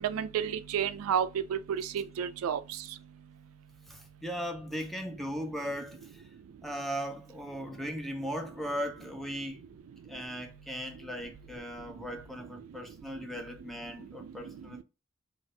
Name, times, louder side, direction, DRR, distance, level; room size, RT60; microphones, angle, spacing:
voice 1, 0.0-2.6, right 8 dB, 85° right, 0.3 m, -31 dB
voice 2, 3.9-6.2 6.6-9.6 10.1-14.8, equal, ahead, 0.4 m, -38 dB
2.6 x 2.4 x 3.2 m
head